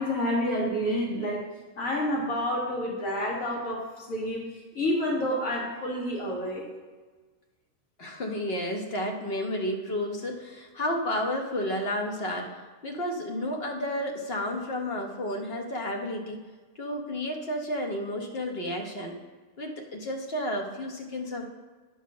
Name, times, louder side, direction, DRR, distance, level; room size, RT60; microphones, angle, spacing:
voice 1, 0.0-1.4 1.8-4.4 4.7-6.7, equal, 80° left, -3 dB, 2.1 m, -29 dB
voice 2, 8.0-12.6 12.8-16.4 16.7-19.2 19.6-21.4, left 1 dB, 50° left, 2 dB, 1.3 m, -31 dB
10.0 x 4.0 x 6.2 m, 1.4 s
omnidirectional pair, 1.4 m